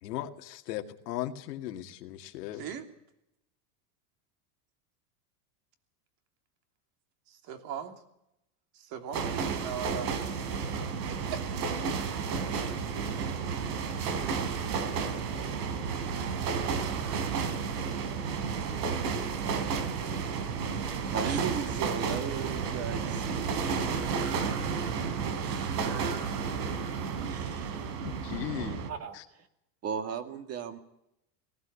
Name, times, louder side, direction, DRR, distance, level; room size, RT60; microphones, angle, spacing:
voice 1, 0.0-2.7 28.0-28.8 29.1-29.2, left 12 dB, 85° left, 6 dB, 2.2 m, -37 dB
voice 2, 2.5-2.9 7.3-8.0 8.7-10.1 11.1-11.4 19.5-20.1, right 8 dB, 50° right, 6 dB, 3.1 m, -40 dB
sound 1, 9.1-28.9, right 5 dB, 90° right, 3.6 m, -32 dB
voice 3, 21.1-24.0 25.3-26.2 27.2-27.8 28.6-29.5 29.8-30.8, right 7 dB, 30° right, 8 dB, 2.2 m, -37 dB
19.0 x 16.5 x 8.4 m, 0.83 s
supercardioid pair, 140°, 47 cm